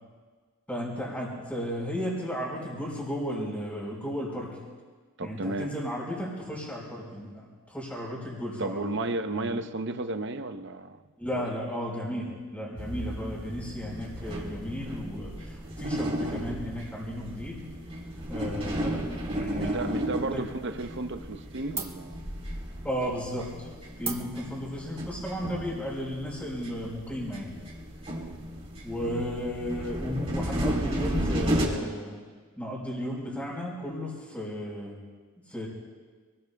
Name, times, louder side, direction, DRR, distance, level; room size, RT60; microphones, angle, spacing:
voice 1, 0.7-4.6 5.2-9.0 9.3-9.6 11.2-17.7 18.3-20.5 22.8-23.7 24.0-27.6 28.8-32.2 32.6-35.0 35.4-35.7, equal, 5° left, -4 dB, 4.7 m, -34 dB
voice 2, 5.2-5.7 8.6-11.0 11.3-11.4 18.8-18.9 19.5-22.2 28.1-28.4 29.0-29.2, right 2 dB, 50° right, 7 dB, 0.8 m, -33 dB
sound 1, 12.8-31.7, equal, 30° right, 3.6 m, -34 dB
sound 2, 21.7-26.9, right 4 dB, 10° right, 1.0 m, -42 dB
28.5 x 20.5 x 2.3 m, 1.5 s
head